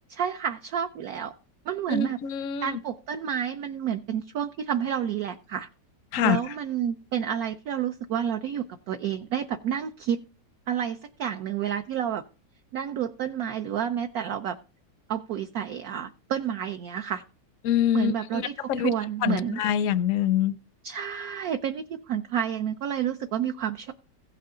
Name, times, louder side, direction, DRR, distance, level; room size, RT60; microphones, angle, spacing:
voice 1, 0.1-1.3 1.7-2.2 2.6-5.7 6.2-10.2 10.7-12.2 12.7-14.6 15.1-17.2 17.9-19.6 20.8-23.9, right 9 dB, 65° right, 1.0 m, -30 dB
voice 2, 1.9-2.8 6.1-6.4 17.6-18.4 18.7-18.9 19.2-20.5, left 10 dB, 65° left, 0.8 m, -25 dB
16.0 x 5.6 x 3.7 m
omnidirectional pair, 1.9 m